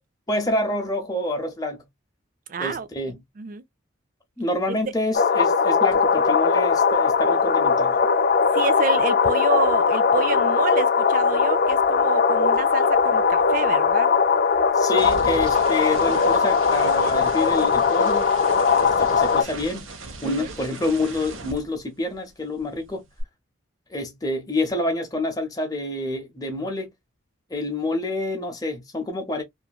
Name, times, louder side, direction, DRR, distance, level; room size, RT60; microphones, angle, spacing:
voice 1, 0.3-1.9 2.6-3.2 4.4-8.0 14.7-18.3 18.7-19.9 20.2-23.0 23.9-26.9 27.5-29.4, left 1 dB, 20° left, 0.7 m, -27 dB
voice 2, 2.5-3.6 4.7-4.8 8.5-14.1 20.2-20.5, right 4 dB, 40° right, 0.4 m, -29 dB
sound 1, 5.1-19.4, left 5 dB, 45° left, 0.3 m, -20 dB
sound 2, 5.9-6.1 6.4-10.8 11.0-22.3 22.6-23.2, right 3 dB, 80° right, 0.8 m, -40 dB
2.9 x 2.5 x 2.3 m
head